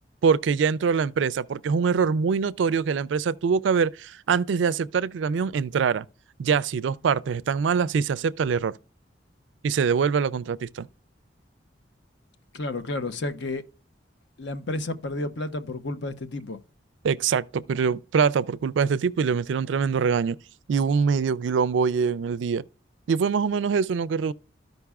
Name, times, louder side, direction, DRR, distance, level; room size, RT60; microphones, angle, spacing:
voice 1, 0.2-6.0 6.4-8.7 9.6-10.9 17.0-20.4 20.7-22.6 23.1-24.3, right 6 dB, 75° right, 0.4 m, -24 dB
voice 2, 12.5-13.6 14.4-16.6, left 2 dB, 65° left, 0.7 m, -31 dB
14.0 x 5.2 x 2.3 m
head